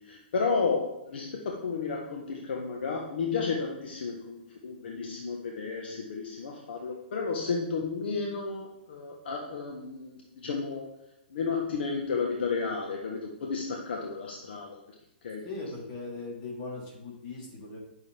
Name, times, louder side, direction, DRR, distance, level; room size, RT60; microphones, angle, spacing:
voice 1, 0.0-10.9 11.3-14.8 15.2-15.4, left 4 dB, 70° left, 1 dB, 1.3 m, -32 dB
voice 2, 15.4-17.8, left 3 dB, 50° left, -3 dB, 3.3 m, -39 dB
11.0 x 6.4 x 3.4 m, 0.85 s
hypercardioid pair, 130°, 6 cm